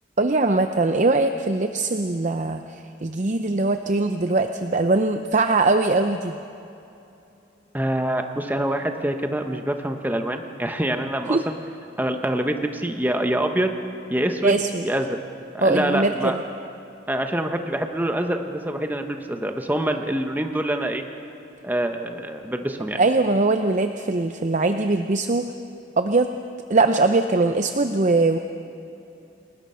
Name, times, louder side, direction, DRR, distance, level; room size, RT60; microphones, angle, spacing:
voice 1, 0.2-6.4 11.3-11.4 14.4-14.8 15.6-16.4 23.0-25.5 26.0-26.3 26.7-28.4, right 3 dB, 40° right, 7 dB, 0.7 m, -21 dB
voice 2, 7.7-11.6 12.0-13.7 14.1-14.5 14.8-15.2 15.5-16.4 17.1-21.1 21.6-23.0, right 1 dB, 10° right, 5 dB, 1.1 m, -25 dB
29.0 x 20.0 x 5.7 m, 2.8 s
head